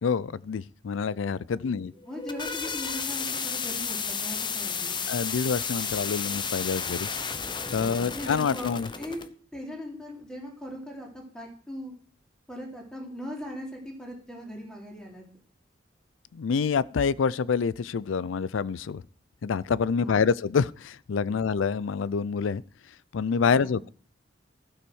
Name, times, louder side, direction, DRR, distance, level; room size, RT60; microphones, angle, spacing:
voice 1, 0.0-1.9 5.1-7.1 7.7-8.9 16.3-19.0 19.4-22.6 23.1-23.9, left 6 dB, 85° left, 0.4 m, -27 dB
voice 2, 1.5-5.0 7.8-8.7 9.0-9.3 9.5-11.9 12.5-15.2 23.4-23.8, equal, 5° left, 2.9 m, -40 dB
sound 1, 2.0-9.3, left 6 dB, 25° left, 0.8 m, -32 dB
15.5 x 5.7 x 6.3 m
head